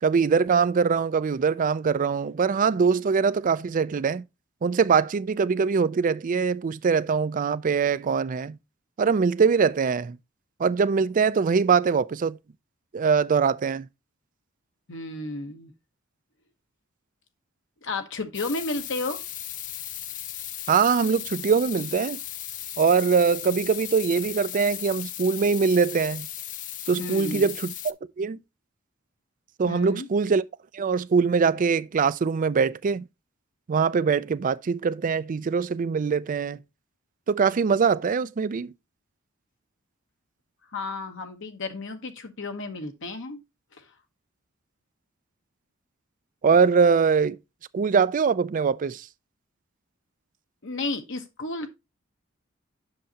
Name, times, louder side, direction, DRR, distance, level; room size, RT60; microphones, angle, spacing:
voice 1, 0.0-4.2 4.6-8.6 9.0-10.2 10.6-12.4 12.9-13.9 20.7-22.2 22.8-26.3 26.9-28.4 29.6-30.4 30.7-33.1 33.7-36.6 37.3-38.7 46.4-47.4 47.7-49.1, right 5 dB, 40° right, 0.4 m, -22 dB
voice 2, 14.9-15.7 17.8-19.2 27.0-27.5 29.7-30.1 40.7-43.4 43.7-43.8 50.6-51.7, left 2 dB, 65° left, 1.1 m, -32 dB
sound 1, 18.3-27.9, left 12 dB, 40° left, 0.4 m, -36 dB
7.8 x 6.4 x 2.8 m
head